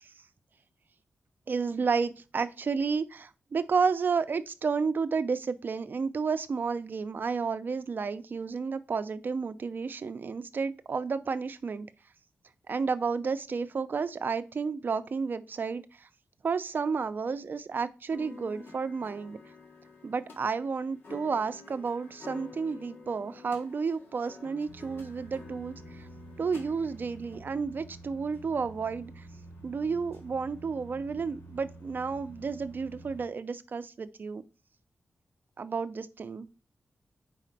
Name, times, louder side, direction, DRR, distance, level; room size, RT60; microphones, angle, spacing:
voice 1, 1.5-11.9 12.7-16.1 16.4-19.4 20.0-26.1 26.4-29.3 29.6-34.4 35.6-36.5, right 5 dB, 50° right, 12 dB, 0.5 m, -31 dB
sound 1, 18.1-27.4, left 4 dB, 65° left, 1.5 m, -50 dB
sound 2, 24.6-33.2, right 2 dB, 80° left, 2.6 m, -49 dB
4.9 x 4.2 x 5.8 m, 0.34 s
wide cardioid pair, 120°, 4 cm